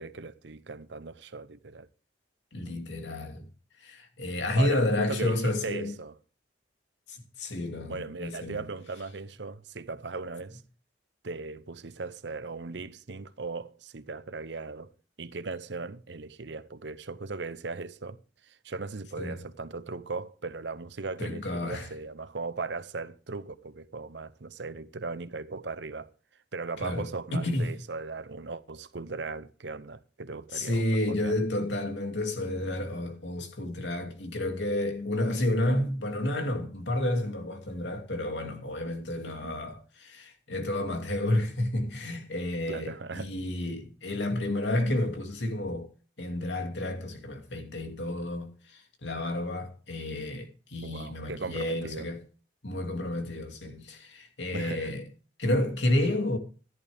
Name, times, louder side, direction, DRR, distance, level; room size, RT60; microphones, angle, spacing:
voice 1, 0.0-1.9 4.6-6.2 7.8-10.6 11.2-14.9 15.2-26.1 26.5-31.3 39.4-39.6 42.7-43.3 50.8-52.1 54.5-54.9, right 3 dB, 75° right, 0.8 m, -38 dB
voice 2, 2.5-3.5 3.8-5.9 7.1-8.7 19.2-19.4 21.2-21.9 26.8-27.8 30.5-45.9 46.2-52.2 52.6-55.0 55.4-56.4, left 1 dB, 80° left, 2.6 m, -30 dB
14.0 x 11.0 x 3.5 m
head